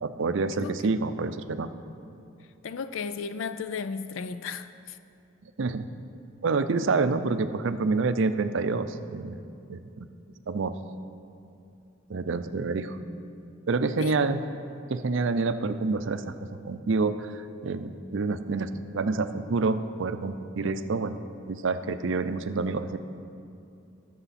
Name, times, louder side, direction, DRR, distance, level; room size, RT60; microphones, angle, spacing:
voice 1, 0.0-1.7 5.6-5.9 6.4-9.4 9.7-10.1 10.5-10.7 12.1-13.0 13.7-14.4 14.9-16.2 16.6-21.2 21.5-23.0, right 3 dB, 65° right, 11 dB, 0.5 m, -27 dB
voice 2, 2.6-5.0 14.0-14.1, left 5 dB, 65° left, 11 dB, 0.4 m, -34 dB
18.5 x 6.9 x 4.2 m, 2.6 s
head